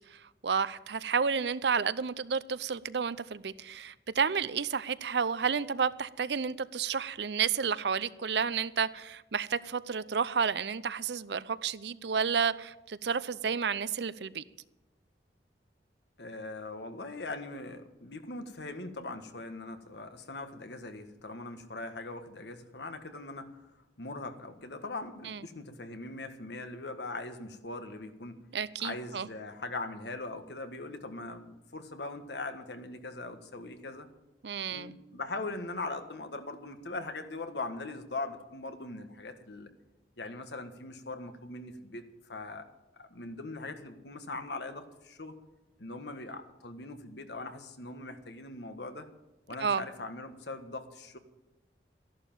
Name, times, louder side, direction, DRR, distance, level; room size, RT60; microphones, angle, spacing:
voice 1, 0.4-14.4 25.2-25.4 28.5-29.3 34.4-35.0 49.6-49.8, right 6 dB, 75° right, 0.6 m, -31 dB
voice 2, 16.2-23.5 24.0-28.4 28.8-34.1 34.7-39.7 40.2-42.6 43.0-45.4 45.8-49.1 49.5-51.2, left 2 dB, 75° left, 1.6 m, -41 dB
14.0 x 11.5 x 7.3 m
head